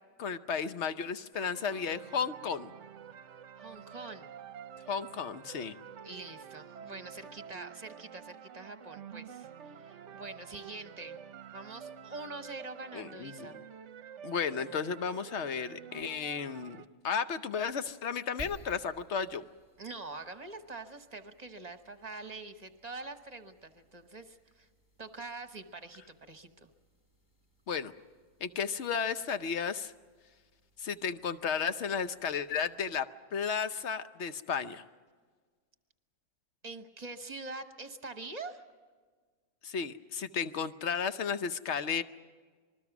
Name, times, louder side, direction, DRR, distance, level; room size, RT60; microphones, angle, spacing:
voice 1, 0.2-2.7 4.9-5.7 12.9-13.5 14.2-16.8 17.0-19.4 27.7-27.9 28.4-29.9 30.8-33.1 33.3-34.8 39.6-42.0, left 6 dB, 55° left, 11 dB, 1.0 m, -33 dB
sound 1, 1.3-16.9, right 8 dB, 60° right, 1.0 m, -49 dB
voice 2, 3.5-4.3 6.0-11.2 11.5-13.6 19.8-24.7 25.0-26.7 36.6-38.6, right 3 dB, 30° right, 8 dB, 1.1 m, -45 dB
sound 2, 18.4-33.1, right 2 dB, 35° left, 4.2 m, -58 dB
27.0 x 21.0 x 6.0 m, 1.5 s
omnidirectional pair, 1.5 m